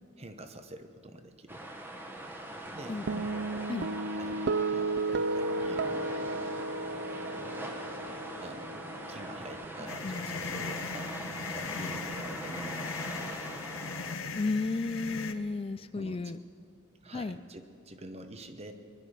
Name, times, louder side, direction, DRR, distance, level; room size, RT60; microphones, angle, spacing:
voice 1, 0.2-1.6 2.7-3.0 4.2-7.7 8.4-13.2 15.9-16.3 17.0-18.7, right 1 dB, 30° right, 8 dB, 1.0 m, -47 dB
sound 1, 1.5-14.1, right 1 dB, 10° right, 1.2 m, -42 dB
voice 2, 2.9-3.3 3.7-3.9 9.8-10.3 14.4-16.4 17.1-17.4, left 3 dB, 30° left, 12 dB, 0.3 m, -33 dB
sound 2, 3.1-9.7, right 3 dB, 55° right, 0.4 m, -33 dB
sound 3, 9.9-15.3, left 5 dB, 85° left, 0.8 m, -38 dB
21.5 x 11.5 x 5.0 m, 2.5 s
head